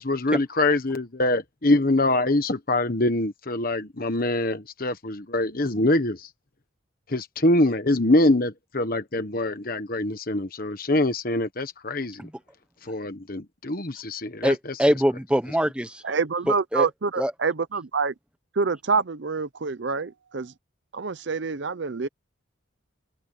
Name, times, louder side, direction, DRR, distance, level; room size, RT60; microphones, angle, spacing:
voice 1, 0.0-6.3 7.1-12.3 12.8-14.8, left 2 dB, 45° left, 1.3 m, -24 dB
voice 2, 14.4-16.0 16.7-16.9 17.2-17.3, equal, 5° right, 1.1 m, -23 dB
voice 3, 16.0-18.1 18.5-20.5 20.9-22.1, right 4 dB, 55° right, 0.6 m, -26 dB
head